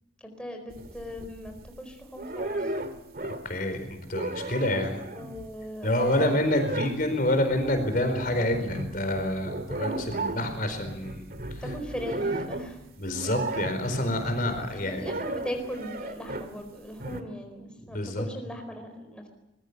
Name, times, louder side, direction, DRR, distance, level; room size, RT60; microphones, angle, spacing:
voice 1, 0.2-2.7 4.7-4.8 5.1-6.4 11.6-12.8 14.6-19.3, equal, 5° left, 4 dB, 4.5 m, -38 dB
sound 1, 0.7-1.8 2.2-3.6 3.9-16.6 17.0-17.2, right 2 dB, 50° right, 2.2 m, -35 dB
voice 2, 3.2-5.0 5.8-11.2 11.5-11.6 13.0-15.2 17.9-18.3, left 1 dB, 45° left, 7 dB, 4.5 m, -28 dB
24.0 x 22.0 x 6.9 m, 0.91 s
head